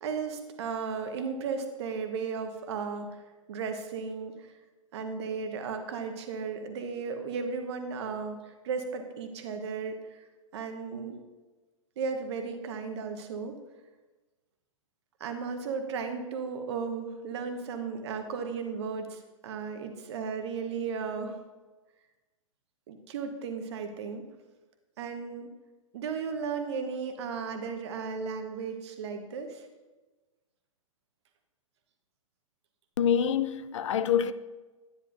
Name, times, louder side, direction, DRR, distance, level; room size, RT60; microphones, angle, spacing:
voice 1, 0.0-3.2 3.5-4.6 4.9-10.2 10.5-11.2 12.0-13.6 15.2-21.4 22.9-24.2 25.0-25.5 25.9-29.7, right 5 dB, 50° right, 1.2 m, -35 dB
voice 2, 33.0-34.3, left 8 dB, 60° left, 0.5 m, -26 dB
10.0 x 9.8 x 2.6 m
figure-of-eight pair, 115°, 18 cm